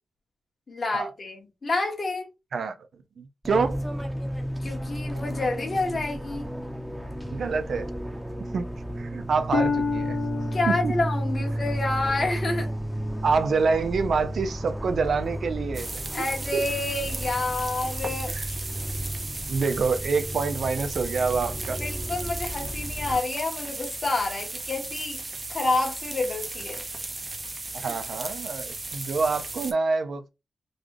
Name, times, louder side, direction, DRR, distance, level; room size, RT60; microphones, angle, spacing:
voice 1, 0.7-2.3 4.6-6.5 10.5-12.7 16.1-18.3 21.8-25.2 25.5-26.8, left 2 dB, 50° left, 1.4 m, -28 dB
voice 2, 3.2-3.8 7.3-7.9 8.5-8.7 9.0-10.2 10.7-11.0 13.2-16.2 16.5-16.6 18.3-18.5 19.5-21.8 27.7-30.3, right 4 dB, 75° right, 0.5 m, -26 dB
Fixed-wing aircraft airplane, 3.4-23.2, equal, 10° right, 0.9 m, -33 dB
Harp, 9.5-13.3 13.8-14.2 14.8-15.0, left 4 dB, 85° left, 0.5 m, -31 dB
sound 1, 15.7-29.7, right 2 dB, 35° right, 0.8 m, -36 dB
3.9 x 2.3 x 3.3 m
cardioid pair, 80°, 0 cm